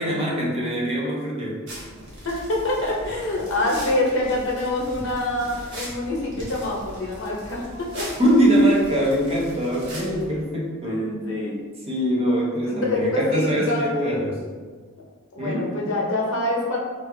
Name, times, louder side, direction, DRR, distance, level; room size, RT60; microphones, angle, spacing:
voice 1, 0.0-1.6 8.2-11.0 11.9-14.4 15.4-15.8, equal, 30° right, -4 dB, 0.7 m, -22 dB
sound 1, 1.7-10.3, right 1 dB, 55° right, 1.3 m, -39 dB
voice 2, 2.2-8.0 8.4-8.5 10.4-11.6 12.7-14.4 15.3-16.8, left 2 dB, 60° left, -2 dB, 0.8 m, -26 dB
4.9 x 2.6 x 2.7 m, 1.5 s
head